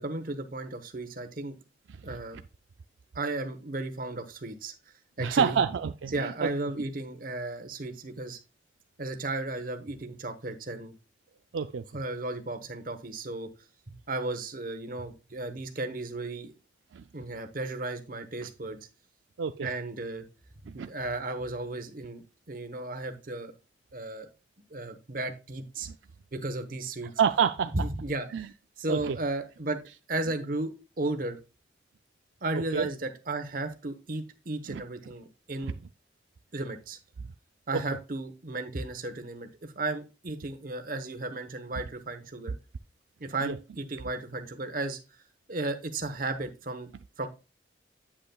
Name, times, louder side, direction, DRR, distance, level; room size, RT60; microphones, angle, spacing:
voice 1, 0.0-1.5 2.0-2.4 3.1-4.7 5.2-5.6 6.1-8.4 9.0-10.9 11.9-13.5 13.9-16.5 17.1-18.8 19.6-20.2 20.6-23.5 23.9-24.3 24.7-25.9 26.3-27.1 27.7-28.5 28.8-29.8 30.1-31.4 32.4-35.7 36.5-37.0 37.7-42.5 43.2-45.0 45.5-46.9 47.2-47.3, right 2 dB, 50° right, 1.0 m, -34 dB
voice 2, 5.2-6.5 11.5-11.8 16.9-17.0 19.4-19.7 20.8-20.9 27.2-27.7 28.3-28.5 28.9-29.2 32.7-32.9 34.7-34.8 43.4-43.5, right 7 dB, 85° right, 0.4 m, -27 dB
8.5 x 7.8 x 2.3 m
head